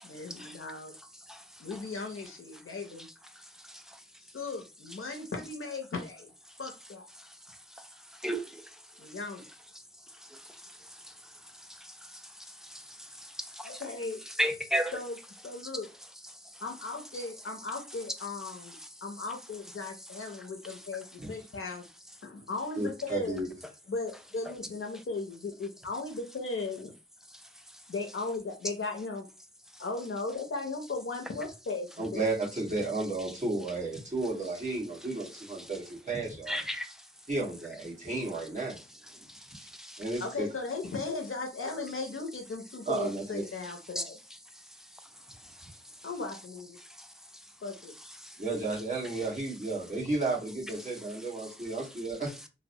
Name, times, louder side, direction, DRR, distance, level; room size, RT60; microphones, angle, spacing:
voice 1, 0.0-0.9 1.6-3.1 4.3-6.3 6.6-7.1 9.0-9.5 13.6-14.2 14.9-15.2 15.4-15.9 16.6-21.8 22.2-23.4 23.9-26.9 27.9-29.3 29.8-32.2 40.2-44.2 46.0-46.8 47.6-47.9, left 3 dB, 85° left, 0.5 m, -37 dB
voice 2, 8.2-8.6 11.7-11.9 12.6-12.8 13.2-13.8 14.4-15.0 36.5-37.0 39.3-40.0 44.0-44.1 48.2-48.3, equal, ahead, 0.4 m, -33 dB
voice 3, 22.8-23.5 32.0-36.6 37.3-38.8 40.0-40.5 42.9-43.4 48.4-52.3, right 2 dB, 35° right, 1.4 m, -33 dB
2.9 x 2.0 x 2.7 m
wide cardioid pair, 60°, 21 cm